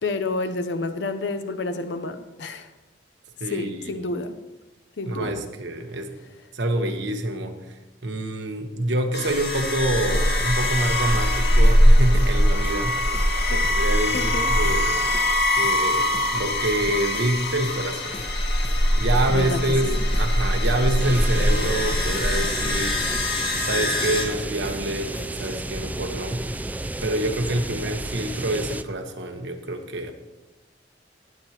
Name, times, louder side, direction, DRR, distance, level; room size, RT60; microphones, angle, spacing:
voice 1, 0.0-2.7 3.5-4.4 5.0-5.4 6.8-6.9 13.5-13.6 14.1-14.5 19.3-20.0, left 3 dB, 80° left, 9 dB, 0.7 m, -29 dB
voice 2, 3.4-4.1 5.0-6.2 6.5-7.8 8.0-13.0 13.5-15.2 15.6-18.2 18.9-23.0 23.5-25.1 25.4-26.4 27.0-30.1, right 1 dB, 85° right, 5 dB, 1.2 m, -27 dB
sound 1, 9.1-24.3, left 1 dB, 65° left, 2.2 m, -22 dB
sound 2, 9.6-9.8 10.1-10.4 10.6-10.8 11.1-11.4 11.6-11.8 12.1-12.4 12.6-13.8 14.1-14.4 14.6-14.8 15.1-15.4 15.6-15.8 16.1-16.4 16.6-17.8 18.1-18.4 18.6-18.8 19.1-19.4 19.6-19.8 20.1-20.4 20.6-21.8 22.1-22.4 22.6-22.8 23.1-23.4 23.6-23.8 24.1-24.4 24.6-25.6, left 2 dB, 35° left, 1.2 m, -42 dB
sound 3, 21.0-28.8, right 1 dB, 10° right, 0.4 m, -32 dB
18.5 x 7.8 x 3.0 m, 1.1 s
head